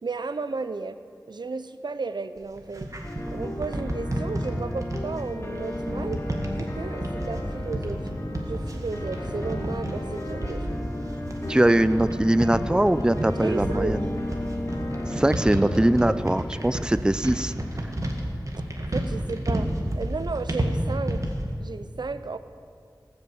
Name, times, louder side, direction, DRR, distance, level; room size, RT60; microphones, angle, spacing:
voice 1, 0.0-1.0 1.3-2.9 3.3-6.2 6.5-8.0 8.5-10.8 13.3-14.0 18.9-19.7 20.0-21.2 21.6-22.4, right 4 dB, 85° right, 11 dB, 0.5 m, -33 dB
sound 1, 2.4-21.5, right 1 dB, 45° right, 1.9 m, -31 dB
sound 2, 3.0-16.3, left 1 dB, 35° left, 2.1 m, -35 dB
sound 3, 7.2-16.1, left 1 dB, 60° left, 1.7 m, -38 dB
voice 2, 11.5-14.0 15.1-17.5, right 1 dB, 10° right, 13 dB, 0.4 m, -22 dB
18.5 x 6.9 x 7.9 m, 2.3 s
wide cardioid pair, 50°, 7 cm